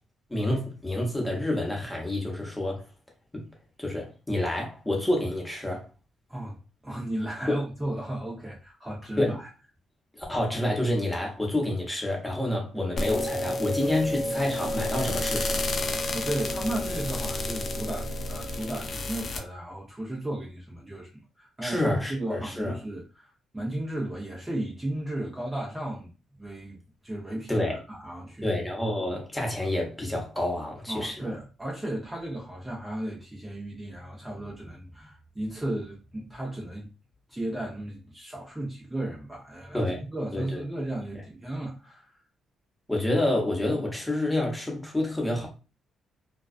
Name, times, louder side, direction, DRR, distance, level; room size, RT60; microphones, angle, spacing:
voice 1, 0.3-2.8 3.3-3.5 3.8-5.9 7.5-7.6 9.2-9.4 10.1-15.7 21.6-22.7 27.5-27.8 28.4-31.3 39.7-40.0 40.3-40.6 42.9-45.5, left 1 dB, 10° left, 0.9 m, -28 dB
voice 2, 6.8-9.5 16.1-26.1 26.4-28.5 30.9-36.9 37.3-42.1, right 1 dB, 15° right, 0.7 m, -35 dB
sound 1, 13.0-19.4, left 1 dB, 45° left, 0.4 m, -30 dB
2.3 x 2.2 x 2.3 m
cardioid pair, 90°, 0 cm